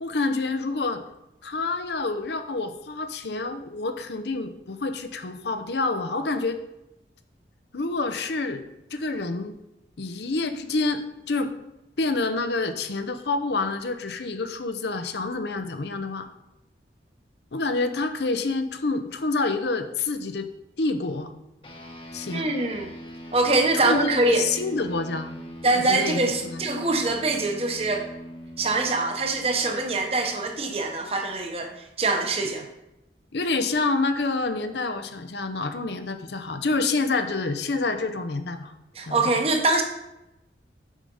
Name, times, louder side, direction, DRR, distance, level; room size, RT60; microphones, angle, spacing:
voice 1, 0.0-1.0 1.4-6.6 7.7-9.6 10.0-11.5 12.0-16.3 17.5-20.5 20.8-21.3 22.1-22.5 23.7-25.3 25.7-26.6 33.3-38.7 39.1-39.4, left 3 dB, 75° left, 8 dB, 0.7 m, -28 dB
sound 1, 21.6-31.4, equal, 30° left, 1.0 m, -41 dB
voice 2, 22.3-22.9 23.3-24.5 25.6-28.1 28.6-31.7 32.0-32.6 39.0-39.8, right 2 dB, 35° right, 4 dB, 1.0 m, -24 dB
7.3 x 5.0 x 5.5 m, 0.92 s
head